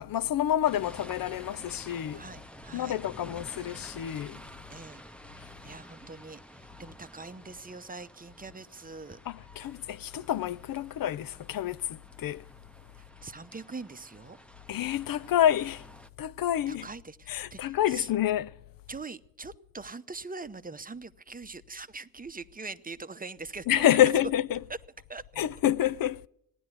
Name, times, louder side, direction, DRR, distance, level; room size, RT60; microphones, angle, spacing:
voice 1, 0.0-2.2 2.7-4.4 9.3-12.4 14.7-15.8 16.2-16.9 17.3-18.5 23.7-24.6 25.4-26.3, left 11 dB, 75° left, 0.5 m, -28 dB
sound 1, 0.7-16.1, equal, 5° left, 0.9 m, -50 dB
voice 2, 2.1-3.0 4.7-5.0 5.6-9.2 13.0-14.4 16.7-18.1 18.9-23.8 25.1-25.2, right 3 dB, 25° right, 0.8 m, -43 dB
15.5 x 11.0 x 7.9 m
cardioid pair, 70°, 35 cm